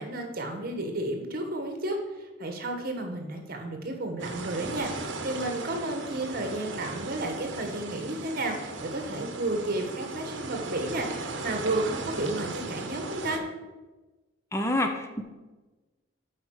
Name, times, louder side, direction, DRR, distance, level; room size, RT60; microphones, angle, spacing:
voice 1, 0.0-13.4, right 2 dB, 50° right, 4 dB, 1.4 m, -32 dB
sound 1, 4.2-13.4, right 3 dB, 65° right, 1.0 m, -37 dB
voice 2, 14.5-15.2, left 1 dB, 15° left, 4 dB, 0.7 m, -27 dB
8.4 x 4.7 x 6.5 m, 1.2 s
head